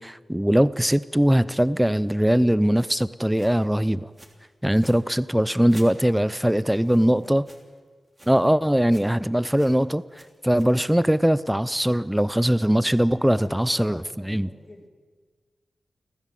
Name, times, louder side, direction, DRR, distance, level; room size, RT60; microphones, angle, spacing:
voice 1, 0.0-4.1 4.6-7.5 8.3-10.0 10.4-14.0 14.3-14.5, equal, 5° right, 16 dB, 0.6 m, -21 dB
sound 1, 2.8-2.9 3.3-3.7 4.1-4.4 4.7-5.0 5.7-7.8 8.1-8.4 8.7-9.2 9.5-9.8 10.1-11.0, right 1 dB, 20° right, 3.0 m, -50 dB
voice 2, 6.5-7.5 13.2-14.9, left 2 dB, 30° left, 2 dB, 3.3 m, -45 dB
29.0 x 14.5 x 7.6 m, 1.5 s
wide cardioid pair, 110°, 0 cm